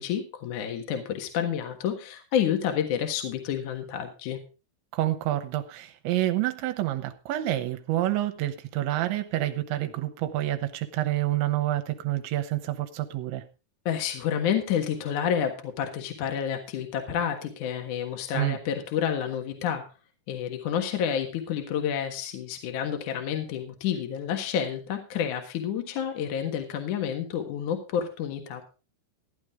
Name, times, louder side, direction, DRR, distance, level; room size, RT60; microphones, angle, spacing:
voice 1, 0.0-4.4 13.9-19.8 20.3-28.6, left 8 dB, 60° left, 5 dB, 2.1 m, -29 dB
voice 2, 4.9-13.4 18.3-18.6, right 14 dB, 75° right, 7 dB, 3.1 m, -28 dB
15.0 x 10.5 x 3.6 m, 0.31 s
omnidirectional pair, 5.6 m